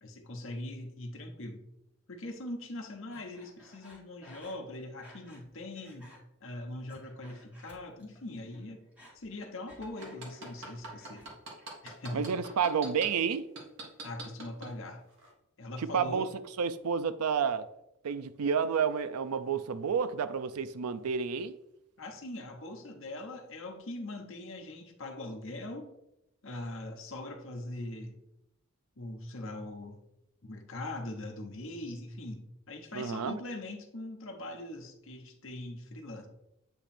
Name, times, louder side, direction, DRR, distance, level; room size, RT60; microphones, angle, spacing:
voice 1, 0.0-1.6 2.1-8.9 9.1-11.3 11.8-12.3 14.0-15.0 15.6-16.3 22.0-25.9 26.4-28.2 29.0-30.0 30.4-36.3, left 1 dB, 60° left, 3 dB, 1.0 m, -41 dB
Breathing, 3.1-5.5 5.8-6.2 6.7-8.2 8.5-11.3 11.6-12.2, left 1 dB, 5° right, 1.6 m, -57 dB
sound 1, 9.8-13.1 13.6-14.7 15.2-15.3, right 2 dB, 55° right, 1.4 m, -42 dB
voice 2, 12.1-13.5 15.8-16.3 16.6-17.7 18.0-21.5 32.9-33.4, right 6 dB, 85° right, 13 dB, 0.4 m, -30 dB
8.0 x 3.0 x 4.3 m, 0.85 s
head